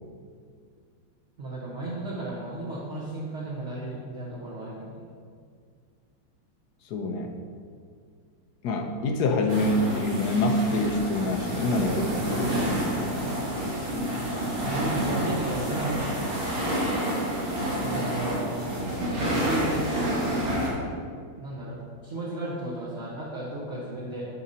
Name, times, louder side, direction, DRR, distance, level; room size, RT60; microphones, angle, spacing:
voice 1, 1.4-5.1 14.6-16.0 17.8-18.8 19.3-20.1 21.4-24.3, right 1 dB, 40° right, -6 dB, 1.5 m, -34 dB
voice 2, 6.9-7.3 8.6-12.6, left 2 dB, 65° left, 4 dB, 1.3 m, -26 dB
sound 1, 9.5-20.7, right 1 dB, 70° right, 2.8 m, -28 dB
12.5 x 5.1 x 4.2 m, 2.1 s
omnidirectional pair, 2.1 m